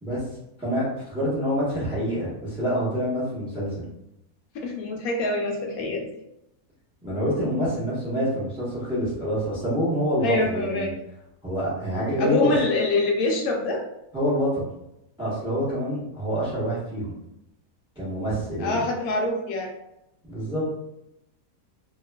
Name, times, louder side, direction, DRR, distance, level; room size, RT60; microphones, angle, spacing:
voice 1, 0.0-3.8 7.0-10.9 11.4-12.5 14.1-14.7 15.2-17.1 17.9-18.8 20.2-20.6, equal, 5° right, -8 dB, 0.7 m, -26 dB
voice 2, 4.5-6.1 10.2-10.9 12.2-13.8 18.6-19.7, left 2 dB, 75° left, 1 dB, 1.0 m, -25 dB
2.8 x 2.3 x 2.2 m, 0.84 s
omnidirectional pair, 1.7 m